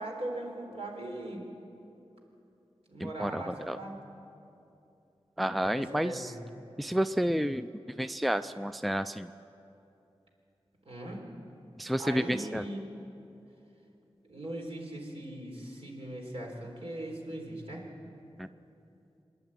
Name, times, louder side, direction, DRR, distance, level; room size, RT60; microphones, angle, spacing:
voice 1, 0.0-1.5 2.9-4.0 5.6-6.5 10.9-11.2 12.0-12.9 14.2-17.9, right 1 dB, 70° right, 0 dB, 4.1 m, -40 dB
voice 2, 3.0-3.8 5.4-6.3 6.8-9.3 11.8-12.6 18.4-18.5, equal, ahead, 12 dB, 0.4 m, -30 dB
26.0 x 11.0 x 9.0 m, 2.8 s
wide cardioid pair, 80°, 10 cm